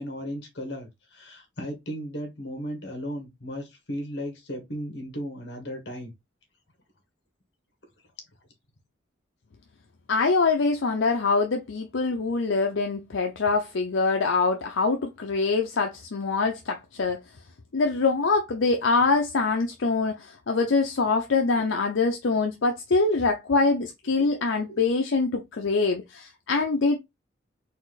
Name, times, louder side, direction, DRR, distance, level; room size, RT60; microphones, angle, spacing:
voice 1, 0.0-6.1 24.2-24.3 24.7-24.8, equal, 60° left, 1.4 m, -35 dB
voice 2, 10.1-17.2 17.7-27.0, left 4 dB, 75° left, 0.6 m, -24 dB
4.2 x 2.6 x 3.9 m
head